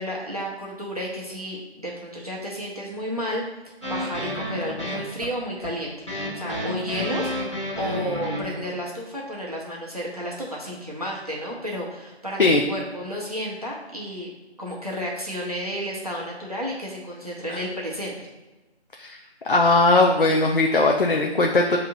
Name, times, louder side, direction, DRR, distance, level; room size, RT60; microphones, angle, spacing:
voice 1, 0.0-3.4 3.9-7.3 7.8-14.3 14.6-18.1, equal, 35° right, -4 dB, 0.7 m, -32 dB
sound 1, 3.8-8.7, left 1 dB, 25° left, 1.2 m, -30 dB
voice 2, 19.4-21.8, left 2 dB, 55° left, 1 dB, 0.5 m, -19 dB
6.8 x 2.8 x 2.6 m, 1.1 s
figure-of-eight pair, 160°, 34 cm